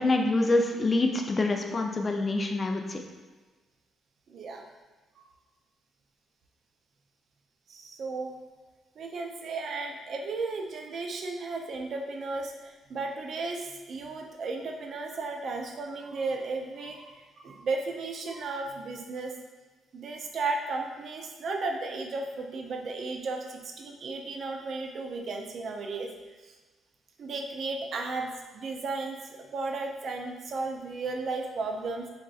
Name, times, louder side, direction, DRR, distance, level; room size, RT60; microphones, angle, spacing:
voice 1, 0.0-3.0, left 2 dB, 30° left, 3 dB, 0.4 m, -26 dB
voice 2, 4.3-4.6 7.7-8.3 9.0-19.4 19.9-26.1 26.4-26.5 27.2-32.1, right 3 dB, 60° right, 3 dB, 0.4 m, -34 dB
3.9 x 2.5 x 2.3 m, 1.3 s
cardioid pair, 90°, 0 cm